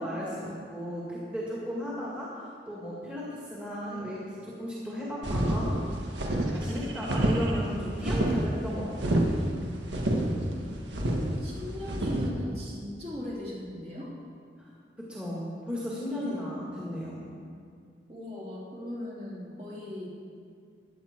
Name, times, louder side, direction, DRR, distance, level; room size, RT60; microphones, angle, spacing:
voice 1, 0.0-5.8 6.3-9.3 14.6-14.7 15.0-17.3, equal, 5° right, -7 dB, 2.0 m, -35 dB
sound 1, 5.2-12.3, right 1 dB, 80° right, 1.6 m, -28 dB
voice 2, 11.0-14.1 16.2-16.7 18.1-20.1, left 1 dB, 35° right, -6 dB, 3.0 m, -39 dB
15.5 x 9.9 x 4.5 m, 2.2 s
head